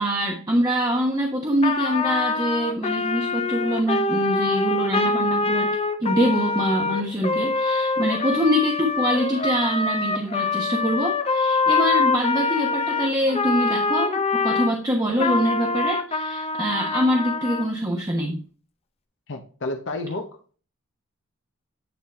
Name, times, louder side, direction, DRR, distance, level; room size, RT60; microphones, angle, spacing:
voice 1, 0.0-5.7 6.0-18.4, equal, 20° right, 0 dB, 1.1 m, -24 dB
Trumpet, 1.6-14.7 15.2-17.7, left 3 dB, 30° left, 0.7 m, -24 dB
voice 2, 19.3-20.6, left 2 dB, 60° left, 6 dB, 1.0 m, -31 dB
9.5 x 4.0 x 4.3 m, 0.39 s
head